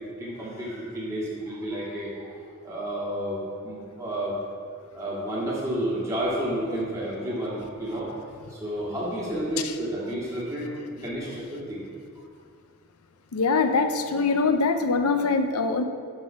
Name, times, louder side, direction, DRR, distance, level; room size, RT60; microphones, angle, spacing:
voice 1, 0.2-4.4 4.9-11.8, right 1 dB, 15° right, -8 dB, 2.4 m, -31 dB
voice 2, 13.3-15.8, left 4 dB, 85° left, 8 dB, 0.6 m, -23 dB
11.5 x 4.0 x 5.8 m, 2.2 s
head